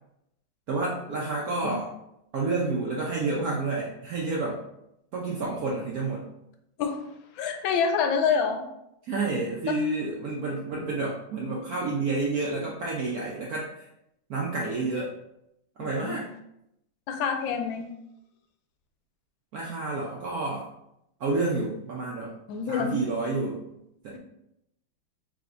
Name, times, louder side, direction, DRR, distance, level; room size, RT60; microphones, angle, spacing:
voice 1, 0.7-1.9 2.3-4.6 5.1-6.2 9.0-13.9 14.3-15.1 15.8-16.2 19.5-20.7 21.2-22.4 22.7-23.6 24.0-24.2, right 3 dB, 70° right, -3 dB, 0.8 m, -29 dB
voice 2, 7.4-8.7 15.8-16.2 17.1-17.8 22.5-23.0, left 6 dB, 75° left, 5 dB, 1.3 m, -27 dB
4.8 x 3.3 x 2.5 m, 0.81 s
omnidirectional pair, 2.2 m